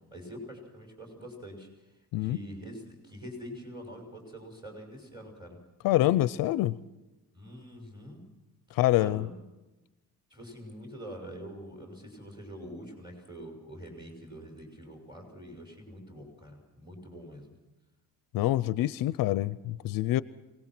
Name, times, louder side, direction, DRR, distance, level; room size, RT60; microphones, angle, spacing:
voice 1, 0.1-5.6 7.3-8.2 8.7-9.4 10.3-17.5, equal, 10° right, 1 dB, 5.8 m, -45 dB
voice 2, 5.8-6.8 8.7-9.3 18.3-20.2, left 15 dB, 65° left, 18 dB, 0.6 m, -26 dB
24.0 x 19.0 x 6.0 m, 1.0 s
cardioid pair, 135°, 36 cm